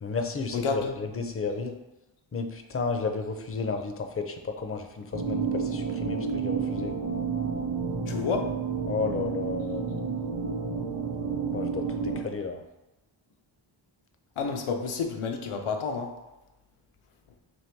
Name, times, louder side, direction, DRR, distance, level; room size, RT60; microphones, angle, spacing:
voice 1, 0.0-1.7 2.3-7.0 8.9-9.9 11.5-12.6, left 4 dB, 30° left, 5 dB, 0.4 m, -32 dB
voice 2, 0.5-0.9 8.1-8.5 14.4-16.2, left 5 dB, 90° left, 3 dB, 0.7 m, -30 dB
sound 1, 5.1-12.2, right 5 dB, 50° right, 0.7 m, -30 dB
3.0 x 2.7 x 4.4 m, 0.98 s
wide cardioid pair, 75°, 49 cm